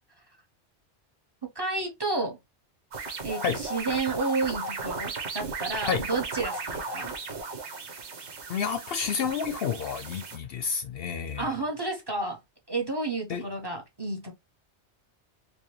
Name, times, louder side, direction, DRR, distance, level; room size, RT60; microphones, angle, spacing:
voice 1, 1.5-2.4 3.2-7.1 11.4-12.4 12.7-14.3, right 3 dB, 25° right, 1.0 m, -31 dB
sound 1, 2.9-10.4, right 4 dB, 75° right, 1.2 m, -36 dB
voice 2, 8.5-11.5 13.3-13.4, left 6 dB, 65° left, 0.7 m, -30 dB
4.7 x 2.2 x 3.0 m
omnidirectional pair, 1.2 m